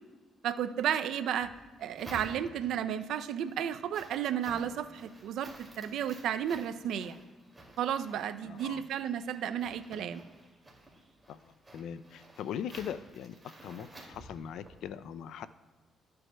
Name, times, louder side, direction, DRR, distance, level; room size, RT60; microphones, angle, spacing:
voice 1, 0.4-1.5 1.8-7.2 7.8-10.2, right 9 dB, 80° right, 11 dB, 0.4 m, -33 dB
sound 1, 1.4-2.8 3.3-14.9, right 1 dB, 20° right, 2.3 m, -52 dB
voice 2, 8.4-8.8 11.3-15.5, left 9 dB, 80° left, 13 dB, 0.3 m, -41 dB
13.0 x 7.7 x 2.2 m, 1.4 s
cardioid pair, 90°, 0 cm